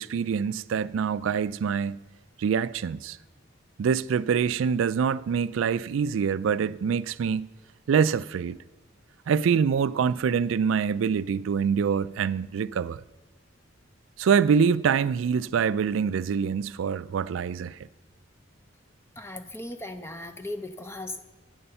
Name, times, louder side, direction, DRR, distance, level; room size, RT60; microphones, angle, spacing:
voice 1, 0.0-2.0 2.4-3.2 3.8-7.5 7.9-8.6 9.3-13.0 14.2-17.8, right 6 dB, 80° right, 0.3 m, -25 dB
voice 2, 19.2-21.2, left 1 dB, 15° left, 0.7 m, -37 dB
11.0 x 8.7 x 5.6 m
head